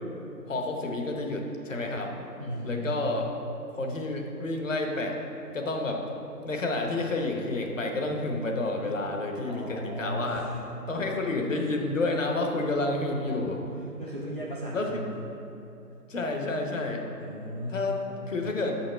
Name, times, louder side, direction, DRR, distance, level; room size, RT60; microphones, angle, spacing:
voice 1, 0.5-2.2 2.6-3.3 3.8-5.2 5.5-6.0 6.4-10.5 10.9-13.6 14.7-15.1 16.1-17.0 17.7-18.0 18.3-18.8, left 2 dB, 50° left, 2 dB, 1.0 m, -29 dB
voice 2, 2.4-3.1 9.5-10.6 10.9-11.0 13.8-15.1 17.2-18.3, equal, 35° right, -5 dB, 0.5 m, -36 dB
7.0 x 5.8 x 4.2 m, 2.9 s
figure-of-eight pair, 155°, 48 cm